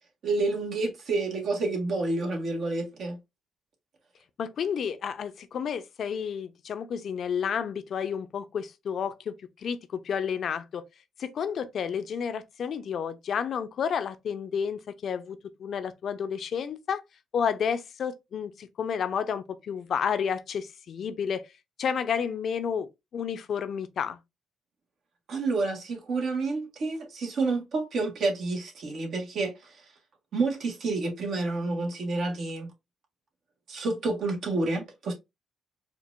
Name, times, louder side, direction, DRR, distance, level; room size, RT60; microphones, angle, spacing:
voice 1, 0.2-3.2 25.3-29.8 30.3-32.7 33.7-35.1, right 3 dB, 65° right, 1.4 m, -29 dB
voice 2, 4.4-10.8 11.2-17.0 17.3-21.5 21.8-24.2, left 7 dB, 60° left, 0.6 m, -31 dB
4.5 x 2.5 x 2.5 m
cardioid pair, 90°, 0 cm